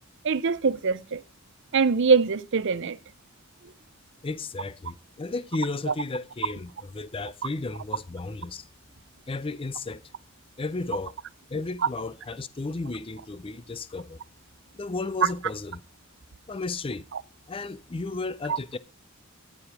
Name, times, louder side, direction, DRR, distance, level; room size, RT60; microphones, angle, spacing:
voice 1, 0.2-1.2 1.7-3.0 18.5-18.6, right 5 dB, 60° right, 0.6 m, -23 dB
voice 2, 4.2-8.7 9.3-10.1 10.6-11.1 11.5-14.2 14.7-15.8 16.5-17.1 17.5-18.8, left 3 dB, 25° left, 0.5 m, -33 dB
11.0 x 7.3 x 4.9 m
head